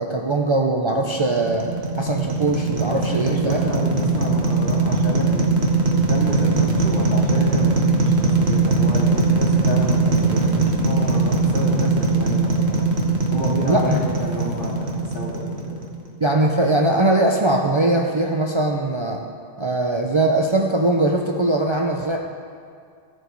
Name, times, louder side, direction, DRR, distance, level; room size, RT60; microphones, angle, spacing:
voice 1, 0.0-1.7 2.0-3.6 13.6-14.0 16.2-19.2 19.6-22.2, right 2 dB, 35° right, 1 dB, 0.6 m, -20 dB
sound 1, 0.9-16.1, right 3 dB, 90° right, 1.5 m, -21 dB
voice 2, 2.8-12.9 13.3-15.8, left 1 dB, 55° left, -5 dB, 2.6 m, -30 dB
15.0 x 6.8 x 4.6 m, 2.3 s
omnidirectional pair, 1.1 m